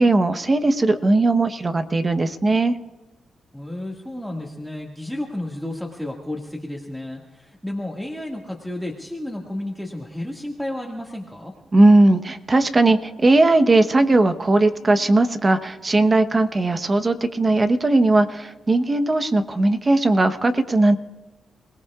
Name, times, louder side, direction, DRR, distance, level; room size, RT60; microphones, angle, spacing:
voice 1, 0.0-2.7 11.7-21.0, right 2 dB, 30° right, 9 dB, 1.0 m, -18 dB
voice 2, 3.5-11.5, left 1 dB, ahead, -1 dB, 1.9 m, -32 dB
30.0 x 18.5 x 2.4 m, 1.1 s
cardioid pair, 80°, 0 cm